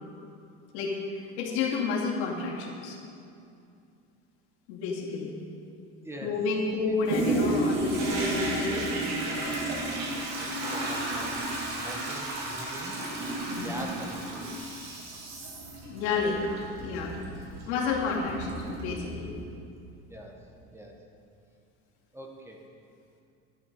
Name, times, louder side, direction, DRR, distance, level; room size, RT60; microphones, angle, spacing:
voice 1, 1.4-3.0 4.7-5.3 6.2-8.9 13.5-13.7 15.8-16.4 16.8-17.2 17.7-19.3, left 4 dB, 85° left, -3 dB, 2.7 m, -30 dB
voice 2, 6.0-6.3 9.8-11.5 11.8-13.0 13.6-15.0 17.5-17.7 20.1-20.3 20.7-21.0 22.1-22.7, equal, 10° right, 1 dB, 1.0 m, -43 dB
Toilet flush, 7.1-19.5 20.0-20.1, right 2 dB, 55° right, 2.6 m, -32 dB
11.5 x 10.5 x 5.4 m, 2.5 s
cardioid pair, 155°, 32 cm